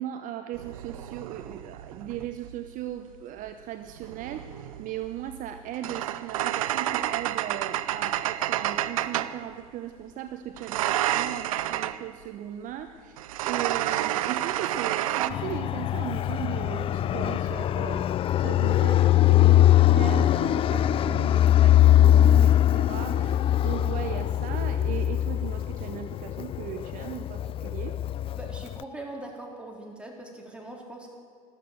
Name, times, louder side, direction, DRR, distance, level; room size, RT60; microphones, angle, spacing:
voice 1, 0.0-28.0, right 11 dB, 45° right, 8 dB, 0.9 m, -38 dB
sound 1, 0.5-2.7 3.9-9.4 10.6-12.0 13.2-15.3, right 13 dB, 70° right, 0.6 m, -30 dB
Fixed-wing aircraft airplane, 15.3-28.8, left 12 dB, 30° left, 0.4 m, -22 dB
voice 2, 28.4-31.1, right 1 dB, 5° right, 0 dB, 3.7 m, -41 dB
13.5 x 13.0 x 7.8 m, 2.2 s
figure-of-eight pair, 65°, 18 cm